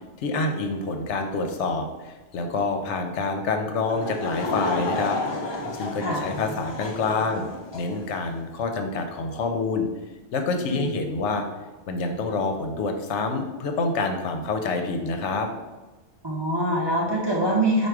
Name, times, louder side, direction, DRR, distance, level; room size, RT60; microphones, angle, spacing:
voice 1, 0.2-5.2 5.7-7.5 7.7-9.9 10.3-11.4 11.9-15.5, left 3 dB, 75° left, 5 dB, 0.9 m, -27 dB
Laughter / Crowd, 3.8-8.1, left 2 dB, 45° left, 0.3 m, -31 dB
voice 2, 16.2-17.9, right 1 dB, 25° right, -4 dB, 0.6 m, -24 dB
4.7 x 2.4 x 4.6 m, 1.2 s
omnidirectional pair, 1.2 m